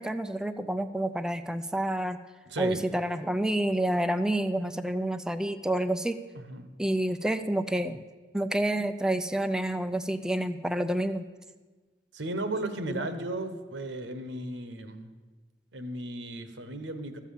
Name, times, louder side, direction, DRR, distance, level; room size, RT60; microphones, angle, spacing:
voice 1, 0.0-2.2 2.6-6.2 6.8-8.0 8.3-11.2 12.9-13.1, right 1 dB, 5° right, 9 dB, 0.4 m, -29 dB
voice 2, 2.5-2.8 6.3-6.7 12.1-15.1 15.7-17.2, right 2 dB, 85° right, 9 dB, 1.1 m, -35 dB
13.5 x 7.4 x 7.1 m, 1.3 s
head